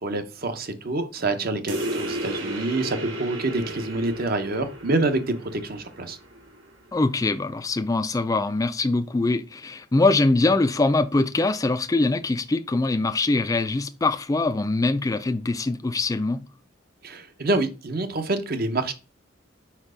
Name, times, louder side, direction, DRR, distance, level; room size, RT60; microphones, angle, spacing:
voice 1, 0.0-6.2 17.0-18.9, right 2 dB, 50° right, 0.8 m, -27 dB
sound 1, 1.7-6.7, right 1 dB, 85° right, 2.3 m, -34 dB
voice 2, 6.9-16.4, left 2 dB, 15° left, 0.3 m, -23 dB
4.8 x 4.5 x 4.9 m
head